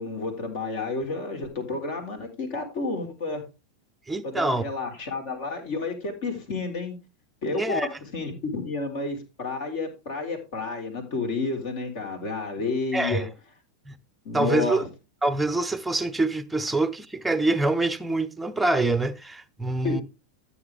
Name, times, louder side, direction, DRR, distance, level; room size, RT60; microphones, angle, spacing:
voice 1, 0.0-3.4 4.2-6.9 7.4-7.9 8.1-13.3 14.2-14.8 19.8-20.0, left 3 dB, 50° left, 4.2 m, -30 dB
voice 2, 4.1-4.6 7.5-7.9 12.9-13.3 13.9-14.0 14.3-14.8 15.2-20.0, right 2 dB, 5° right, 0.9 m, -25 dB
13.5 x 7.1 x 3.5 m
figure-of-eight pair, 90°, 0 cm